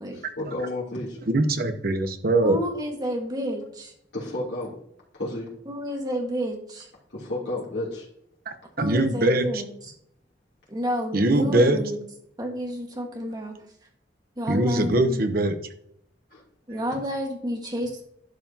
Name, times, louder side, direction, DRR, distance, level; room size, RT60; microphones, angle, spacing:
voice 1, 0.1-1.2 4.1-4.7 5.1-5.5 7.1-8.1 16.3-16.4, left 1 dB, 85° left, -7 dB, 3.0 m, -31 dB
voice 2, 1.3-2.6 8.5-9.6 11.1-11.8 14.5-15.6, right 1 dB, 55° right, 8 dB, 0.9 m, -22 dB
voice 3, 2.4-3.9 5.6-6.9 8.8-9.7 10.7-12.0 12.4-13.5 14.4-15.2 16.7-18.0, equal, 25° right, 2 dB, 1.6 m, -30 dB
11.5 x 5.7 x 2.9 m, 0.70 s
head